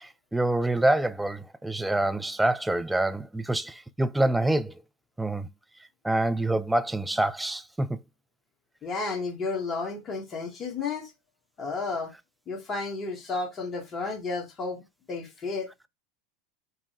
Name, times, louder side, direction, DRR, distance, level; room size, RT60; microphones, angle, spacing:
voice 1, 0.0-4.7 5.2-5.5 6.0-8.0, right 1 dB, 5° right, 0.3 m, -26 dB
voice 2, 8.8-11.1 11.6-12.1 12.5-14.8 15.1-15.7, left 4 dB, 30° left, 1.2 m, -32 dB
5.2 x 2.1 x 3.0 m
figure-of-eight pair, 80°, 0 cm